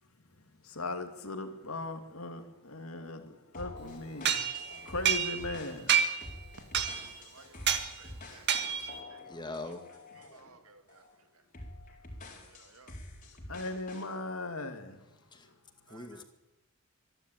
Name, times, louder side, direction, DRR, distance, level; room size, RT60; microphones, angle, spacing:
voice 1, 0.6-4.4 4.9-5.9 13.5-15.0, left 2 dB, 70° left, 7 dB, 2.5 m, -38 dB
sound 1, 3.5-10.5 10.9-11.1 11.5-14.1, left 2 dB, 35° left, 4.2 m, -48 dB
sound 2, 4.2-5.6 5.9-6.3 6.7-7.2 7.7-7.9 8.5-9.0, right 8 dB, 50° right, 1.9 m, -29 dB
voice 2, 7.3-8.8 9.1-9.2 10.3-11.0 12.6-12.9 15.9-16.2, right 4 dB, 75° right, 8 dB, 2.4 m, -58 dB
voice 3, 9.2-9.8 15.3-15.5 15.9-16.2, left 2 dB, 20° left, 7 dB, 2.0 m, -41 dB
24.5 x 12.0 x 9.2 m, 1.0 s
head